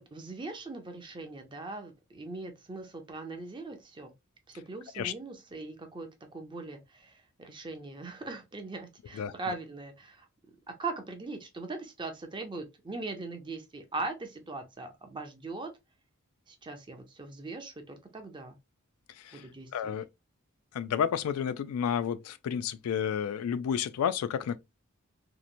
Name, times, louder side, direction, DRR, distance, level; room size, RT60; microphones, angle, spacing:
voice 1, 0.0-4.1 4.5-10.3 10.8-15.7 16.5-18.6 19.3-19.9, right 3 dB, 20° right, 0.5 m, -40 dB
voice 2, 19.7-20.1 20.7-24.6, left 8 dB, 85° left, 0.3 m, -31 dB
2.8 x 2.1 x 2.5 m
head